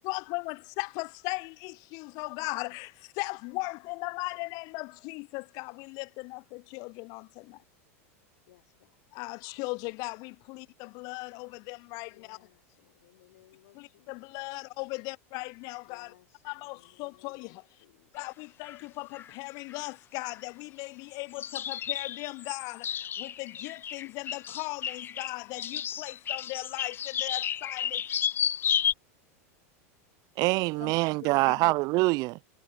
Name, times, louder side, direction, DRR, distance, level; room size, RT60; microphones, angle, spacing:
voice 1, 0.0-7.6 9.1-12.4 13.7-16.1 16.4-17.6 18.1-28.0 30.8-30.9 31.5-31.7, left 27 dB, 55° left, 0.8 m, -38 dB
voice 2, 8.5-9.0 12.1-14.7 15.8-18.2 18.4-18.5, left 16 dB, 75° left, 6.1 m, -62 dB
sound 1, 18.3-18.4 18.6-18.7 19.1-19.3 19.7-19.9 20.2-20.4 21.3-28.9, left 9 dB, 25° left, 0.5 m, -32 dB
voice 3, 30.4-32.4, right 24 dB, 50° right, 0.6 m, -25 dB
hypercardioid pair, 110°, 8 cm